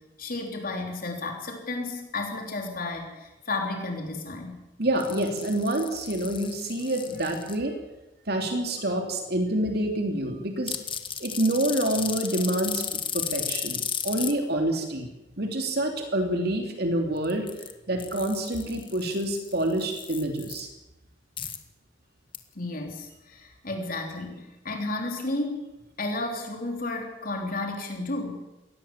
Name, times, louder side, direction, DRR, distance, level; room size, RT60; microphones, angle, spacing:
voice 1, 0.2-4.6 22.6-28.4, left 2 dB, 50° left, 2 dB, 3.7 m, -32 dB
voice 2, 4.8-7.8 8.3-10.7 11.2-12.8 13.1-15.1 15.4-17.5 17.9-20.7, right 1 dB, 60° right, 4 dB, 2.9 m, -27 dB
sound 1, 5.0-7.6 10.7-14.3 17.2-17.7 18.0-20.6 21.4-21.6 22.3-22.4, left 8 dB, 30° left, 1.7 m, -34 dB
22.0 x 18.0 x 7.4 m, 0.99 s
head